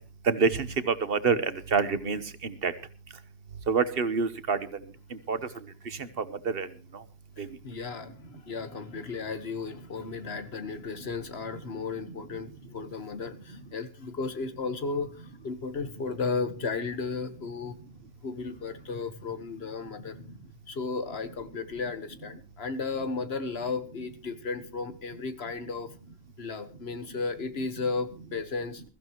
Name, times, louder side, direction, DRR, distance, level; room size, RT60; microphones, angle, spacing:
voice 1, 0.3-2.7 3.7-4.6 5.3-5.4 6.5-6.7 7.4-7.5, right 5 dB, 65° right, 13 dB, 1.3 m, -26 dB
voice 2, 7.4-17.8 18.2-20.2 20.7-25.9 26.4-28.8, left 4 dB, 85° left, 11 dB, 1.6 m, -34 dB
22.0 x 14.5 x 3.0 m, 0.33 s
omnidirectional pair, 1.0 m